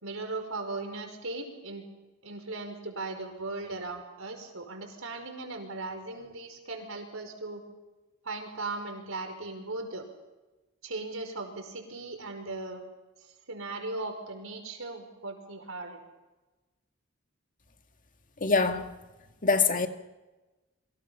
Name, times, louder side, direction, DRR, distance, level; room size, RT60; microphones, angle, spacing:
voice 1, 0.0-1.9 2.2-7.6 8.2-10.1 10.8-12.8 13.5-16.0, right 3 dB, 75° right, 5.4 m, -38 dB
voice 2, 18.4-18.9 19.4-19.9, left 4 dB, 40° left, 2.0 m, -24 dB
28.5 x 24.5 x 5.8 m
head